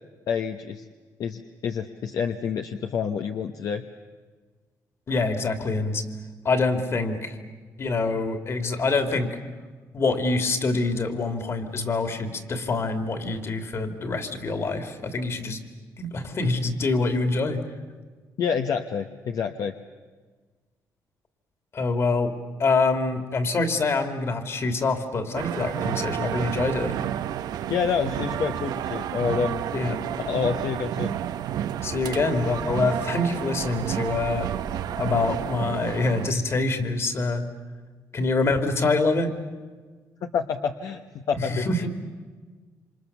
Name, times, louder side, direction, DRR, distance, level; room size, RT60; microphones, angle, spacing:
voice 1, 0.3-0.8 1.2-3.8 18.4-19.7 27.7-29.6 30.2-31.1 40.2-41.7, left 6 dB, 65° left, 5 dB, 1.1 m, -28 dB
voice 2, 5.1-6.0 6.4-7.4 7.8-9.4 9.9-15.6 16.0-17.6 21.7-22.3 22.6-27.0 29.7-30.0 31.8-34.5 35.0-37.4 38.1-39.3 41.3-41.9, left 3 dB, 40° left, 7 dB, 2.8 m, -25 dB
sound 1, 25.3-36.3, right 10 dB, 75° right, 0.9 m, -30 dB
28.0 x 26.5 x 7.1 m, 1.4 s
cardioid pair, 115°, 7 cm